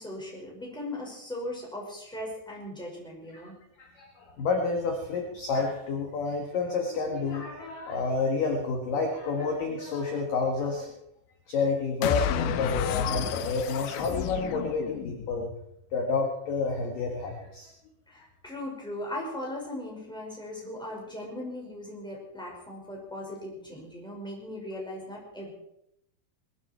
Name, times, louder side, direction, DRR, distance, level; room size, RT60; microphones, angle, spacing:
voice 1, 0.0-3.6 18.1-25.5, left 1 dB, ahead, -2 dB, 4.6 m, -38 dB
voice 2, 3.8-11.0 11.5-15.5 15.9-17.7, left 4 dB, 55° left, 1 dB, 2.7 m, -29 dB
sound 1, 12.0-15.4, left 11 dB, 80° left, 2.6 m, -31 dB
21.0 x 14.0 x 4.5 m, 0.79 s
omnidirectional pair, 5.8 m